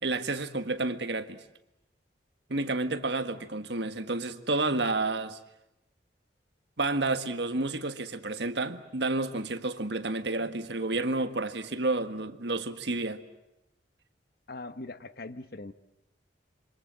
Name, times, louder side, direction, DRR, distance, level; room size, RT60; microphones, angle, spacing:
voice 1, 0.0-1.4 2.5-5.4 6.8-13.2, right 2 dB, 65° right, 1.6 m, -30 dB
voice 2, 14.5-15.7, left 2 dB, 55° left, 1.1 m, -41 dB
28.0 x 25.5 x 7.6 m
head